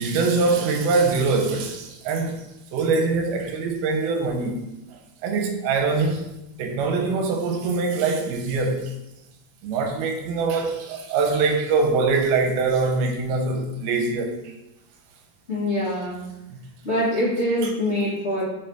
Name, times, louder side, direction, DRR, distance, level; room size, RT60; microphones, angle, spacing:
voice 1, 0.0-2.4 2.7-4.6 5.2-6.3 6.6-8.9 9.6-14.3 16.5-16.6 17.6-17.7, right 4 dB, 85° right, 2.5 m, -23 dB
voice 2, 15.5-16.2 16.8-18.4, left 1 dB, 30° left, 1.2 m, -24 dB
5.7 x 4.4 x 3.9 m
omnidirectional pair, 4.5 m